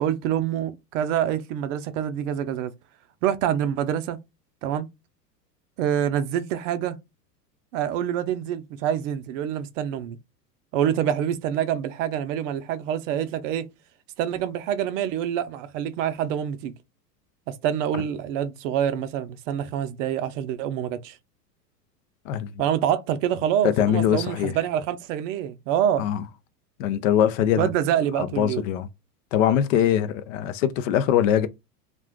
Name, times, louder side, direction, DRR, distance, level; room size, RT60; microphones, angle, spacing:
voice 1, 0.0-2.7 3.2-4.2 4.6-4.9 5.8-7.0 7.7-10.2 10.7-13.7 14.2-16.7 17.5-21.2 22.6-26.0 27.6-28.6, right 10 dB, 50° right, 0.5 m, -26 dB
voice 2, 23.6-24.5 26.0-26.2 26.8-27.7 28.2-28.9 29.3-31.5, left 10 dB, 55° left, 0.5 m, -22 dB
2.4 x 2.2 x 3.5 m
hypercardioid pair, 100°, 49 cm